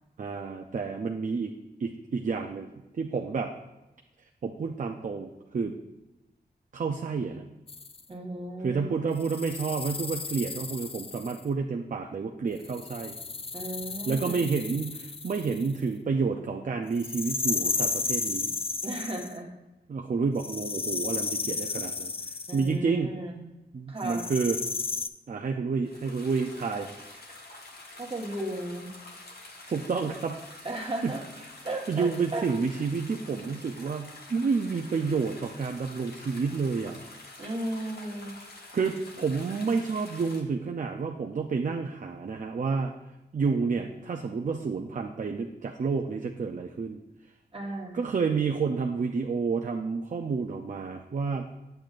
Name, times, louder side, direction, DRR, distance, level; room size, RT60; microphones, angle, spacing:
voice 1, 0.2-1.5 1.8-2.7 2.9-3.5 4.4-5.7 6.7-7.4 8.6-13.2 14.1-18.5 19.9-22.1 22.5-23.2 23.7-24.6 25.3-26.9 29.7-30.4 31.0-31.1 31.9-37.0 38.7-42.9 43.3-47.0 47.9-51.5, right 5 dB, 50° right, 3 dB, 0.5 m, -29 dB
sound 1, 7.7-8.0 9.2-11.4 12.6-15.8 17.0-19.4 20.4-22.7 24.0-25.1, left 4 dB, 35° left, 0.4 m, -33 dB
voice 2, 8.1-9.0 13.5-14.5 18.8-19.5 22.5-23.4 23.9-24.3 28.0-28.9 30.6-31.2 31.6-32.5 37.4-38.3 47.5-48.0, right 1 dB, 30° right, -1 dB, 1.3 m, -35 dB
sound 2, 25.8-40.4, left 2 dB, 65° left, 1.1 m, -47 dB
8.6 x 7.7 x 2.5 m, 1.0 s
wide cardioid pair, 100°, 18 cm